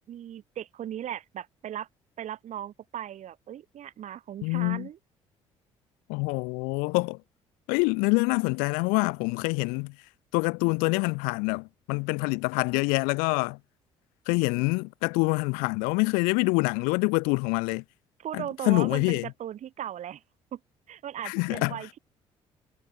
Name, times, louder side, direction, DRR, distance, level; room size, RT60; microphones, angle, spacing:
voice 1, 0.1-1.9 2.2-5.0 18.2-20.2 20.5-20.6 20.9-22.0, right 10 dB, 50° right, 2.1 m, -37 dB
voice 2, 4.4-4.9 6.1-7.2 7.7-9.9 10.3-13.6 14.3-17.8 18.3-19.3 21.2-21.8, left 31 dB, 70° left, 1.2 m, -26 dB
figure-of-eight pair, 50°, 15 cm